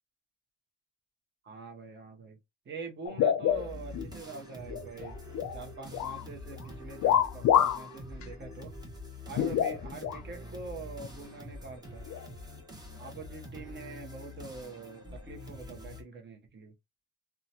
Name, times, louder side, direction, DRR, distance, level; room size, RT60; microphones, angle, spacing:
voice 1, 1.4-2.4 2.6-5.2 5.5-8.7 9.3-12.1 13.0-16.7, right 4 dB, 35° right, 0.9 m, -44 dB
sound 1, 3.1-4.1 4.5-5.6 5.9-6.2 7.0-7.9 8.2-8.3 9.3-10.2 11.0-11.1 12.1-12.3, left 10 dB, 70° left, 0.5 m, -27 dB
sound 2, 3.5-16.0, left 1 dB, 15° right, 1.0 m, -45 dB
2.7 x 2.3 x 2.7 m
cardioid pair, 90°, 30 cm